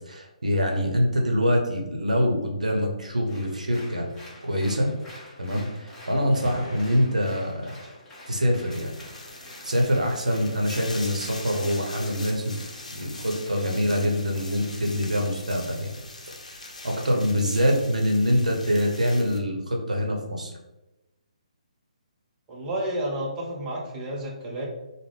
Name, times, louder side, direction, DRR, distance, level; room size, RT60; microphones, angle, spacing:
voice 1, 0.1-4.1 4.4-4.9 5.4-7.8 8.3-9.0 9.3-9.4 9.6-12.5 12.9-15.9 16.3-16.4 16.8-20.5, equal, 75° right, 1 dB, 0.7 m, -25 dB
Applause, 3.3-14.9, left 1 dB, 10° left, 0.8 m, -49 dB
sound 1, 6.4-8.0, equal, 40° left, 1.0 m, -40 dB
sound 2, 8.7-19.4, left 2 dB, 65° left, 0.7 m, -42 dB
voice 2, 22.5-24.6, right 1 dB, 20° right, -3 dB, 0.6 m, -31 dB
3.4 x 2.1 x 3.3 m, 1.0 s
figure-of-eight pair, 135°, 4 cm